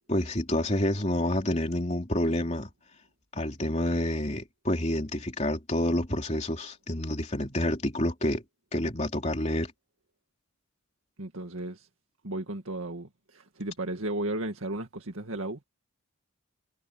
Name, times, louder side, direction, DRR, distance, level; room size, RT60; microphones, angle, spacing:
voice 1, 0.1-2.7 3.3-8.4 8.7-9.7, left 1 dB, 35° left, 3.2 m, -28 dB
voice 2, 11.2-11.9 12.2-13.1 13.3-15.6, right 1 dB, 85° right, 2.0 m, -34 dB
head